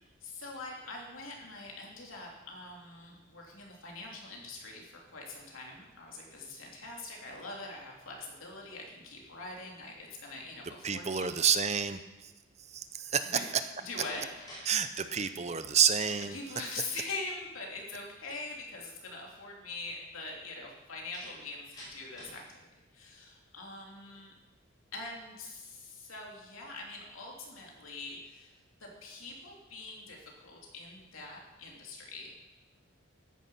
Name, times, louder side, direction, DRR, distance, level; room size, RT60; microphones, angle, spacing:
voice 1, 0.2-11.3 13.3-13.5 13.8-14.3 16.3-22.6 22.9-24.3 24.9-28.5 28.8-32.3, left 3 dB, 85° left, -1 dB, 3.2 m, -43 dB
voice 2, 10.8-12.3 12.7-13.4 14.7-16.4, right 7 dB, 30° right, 10 dB, 0.6 m, -29 dB
Slam, 13.6-14.7 15.0-15.5 21.1-22.5, equal, 20° left, 4.7 m, -49 dB
13.5 x 9.9 x 5.7 m, 1.0 s
head